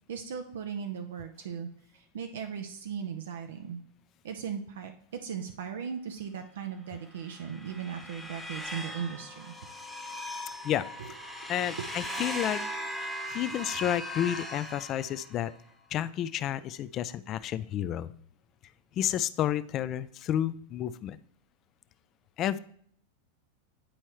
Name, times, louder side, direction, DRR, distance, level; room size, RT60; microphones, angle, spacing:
voice 1, 0.1-1.7 1.9-3.8 4.2-9.5 11.0-11.1, right 7 dB, 85° right, 6 dB, 0.6 m, -37 dB
sound 1, 7.2-15.5, equal, ahead, 1.0 m, -39 dB
voice 2, 11.5-12.6 13.3-15.5 15.9-18.1 18.9-21.2 22.4-22.6, left 11 dB, 35° left, 15 dB, 0.4 m, -30 dB
10.0 x 4.4 x 3.1 m, 0.62 s
supercardioid pair, 130°, 0 cm